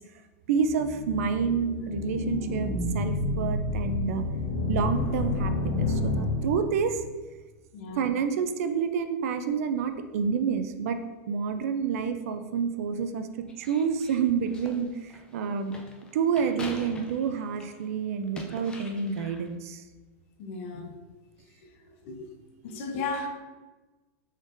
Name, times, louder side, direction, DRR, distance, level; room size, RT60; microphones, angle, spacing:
voice 1, 0.5-4.2 4.7-7.0 8.0-11.0 11.3-15.7 16.1-19.8, right 6 dB, 70° right, 9 dB, 0.4 m, -28 dB
sound 1, 0.6-7.0, left 2 dB, 75° left, 1.2 m, -29 dB
voice 2, 7.7-8.1 20.4-20.9 22.0-22.2 22.6-23.3, left 3 dB, 55° left, 4 dB, 0.6 m, -34 dB
sound 2, 13.5-17.8 18.2-19.5, left 1 dB, 10° left, 0.3 m, -44 dB
3.9 x 3.5 x 2.5 m, 1.2 s
supercardioid pair, 155°, 8 cm